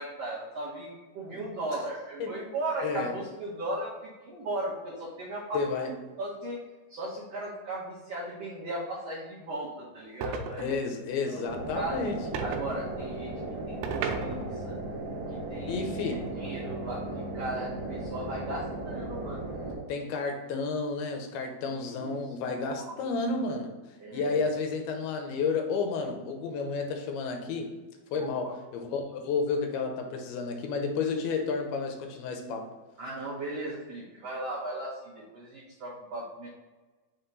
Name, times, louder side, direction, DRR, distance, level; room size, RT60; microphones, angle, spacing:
voice 1, 0.0-5.6 6.2-6.6 6.9-10.7 11.3-11.4 11.7-12.1 12.4-14.8 15.3-19.5 21.8-22.2 22.7-22.9 24.0-24.4 28.1-28.5 33.0-36.5, right 1 dB, 75° right, -6 dB, 1.5 m, -37 dB
voice 2, 2.8-3.1 5.5-5.9 10.6-12.6 15.7-16.3 19.9-23.7 24.1-27.8 28.1-32.7, left 4 dB, 80° left, 4 dB, 2.7 m, -31 dB
sound 1, 10.2-10.9 12.3-12.7 13.8-14.7, right 6 dB, 90° right, 2.7 m, -34 dB
sound 2, 11.4-19.8, right 2 dB, 45° right, 2.4 m, -36 dB
6.1 x 4.3 x 3.9 m, 1.3 s
omnidirectional pair, 4.5 m